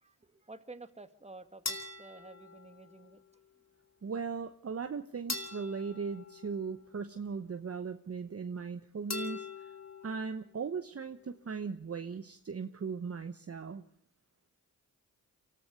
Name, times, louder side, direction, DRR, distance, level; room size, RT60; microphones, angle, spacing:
voice 1, 0.0-3.2, right 3 dB, 20° right, 9 dB, 2.0 m, -51 dB
sound 1, 1.7-3.2 5.3-7.1 9.1-10.2, left 4 dB, 45° left, 2.8 m, -42 dB
voice 2, 4.0-9.7 10.0-13.8, right 5 dB, 40° right, 9 dB, 1.0 m, -38 dB
24.0 x 14.5 x 8.1 m, 0.65 s
supercardioid pair, 45°, 36 cm